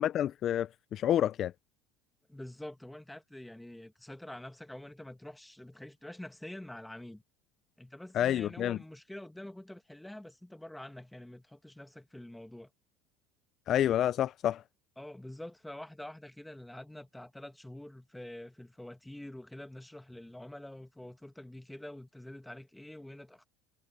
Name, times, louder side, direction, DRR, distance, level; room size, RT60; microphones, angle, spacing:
voice 1, 0.0-1.5 8.1-8.8 13.7-14.6, left 11 dB, 45° left, 0.4 m, -29 dB
voice 2, 2.3-7.2 7.8-12.7 15.0-23.4, left 1 dB, 5° left, 1.7 m, -46 dB
supercardioid pair, 120°, 0 cm